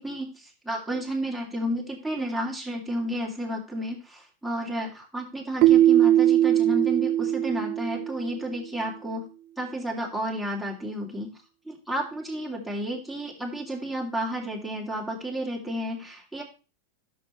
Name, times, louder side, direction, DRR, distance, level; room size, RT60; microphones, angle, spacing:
voice 1, 0.0-9.3 9.6-11.4 11.6-16.4, right 1 dB, ahead, 0 dB, 2.5 m, -32 dB
Keyboard (musical), 5.6-8.5, right 12 dB, 45° right, 0.4 m, -20 dB
12.0 x 6.6 x 3.1 m, 0.33 s
supercardioid pair, 145°, 0 cm